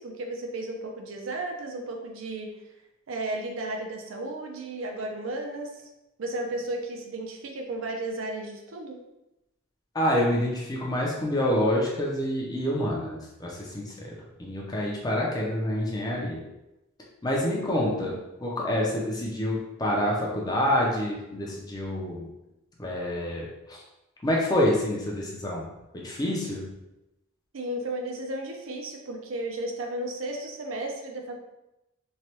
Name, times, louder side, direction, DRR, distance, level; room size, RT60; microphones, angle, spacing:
voice 1, 0.0-2.5 3.1-5.8 6.2-9.0 17.5-18.2 27.5-31.4, right 2 dB, 70° right, 2 dB, 0.5 m, -34 dB
voice 2, 9.9-14.1 14.4-16.4 17.2-18.1 18.4-22.3 22.8-23.8 24.2-25.7 25.9-26.7, left 1 dB, 20° left, -3 dB, 0.5 m, -27 dB
3.1 x 2.2 x 2.9 m, 0.94 s
head